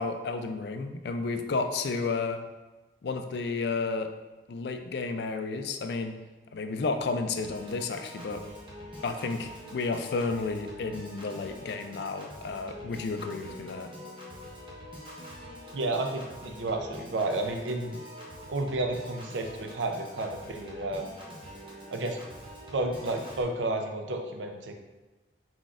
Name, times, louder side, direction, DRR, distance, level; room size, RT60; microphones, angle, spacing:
voice 1, 0.0-2.4 3.0-4.1 4.5-6.2 6.5-8.4 9.0-13.9, left 4 dB, 65° left, 7 dB, 0.4 m, -32 dB
Piano / Organ, 7.4-23.4, equal, 30° right, 0.8 m, -45 dB
voice 2, 15.7-17.9 18.5-21.2 21.9-22.2 22.7-24.7, right 2 dB, 85° right, 4 dB, 0.6 m, -31 dB
4.4 x 4.1 x 2.4 m, 1.2 s
head